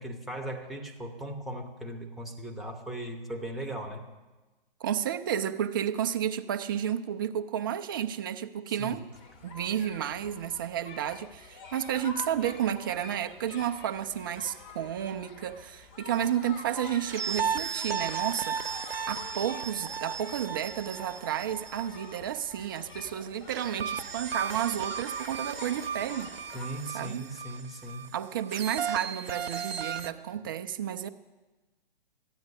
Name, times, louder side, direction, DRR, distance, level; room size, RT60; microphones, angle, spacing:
voice 1, 0.0-4.0 8.7-9.0 26.5-28.1, right 1 dB, ahead, 0.8 m, -38 dB
voice 2, 4.8-9.1 9.4-26.3 26.9-27.2 28.1-31.1, right 10 dB, 25° right, 0.3 m, -32 dB
sound 1, 9.1-26.7, left 4 dB, 30° left, 1.2 m, -47 dB
sound 2, 17.1-22.7 23.5-30.1, right 6 dB, 80° right, 0.7 m, -35 dB
13.5 x 9.4 x 5.4 m
figure-of-eight pair, 125°, 29 cm